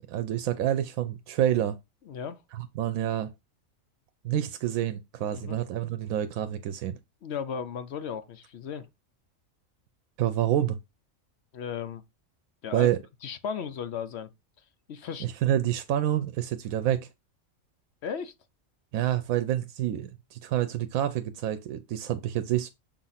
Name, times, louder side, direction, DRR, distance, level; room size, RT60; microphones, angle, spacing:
voice 1, 0.0-1.8 2.5-3.3 4.2-7.0 10.2-10.8 12.7-13.0 15.2-17.1 18.9-22.7, right 11 dB, 85° right, 1.0 m, -28 dB
voice 2, 2.1-2.4 5.3-5.6 7.2-8.9 11.5-12.0 12.6-12.9 13.2-14.3 14.9-15.3 18.0-18.3, left 7 dB, 60° left, 0.8 m, -35 dB
7.0 x 2.5 x 5.6 m
omnidirectional pair, 1.4 m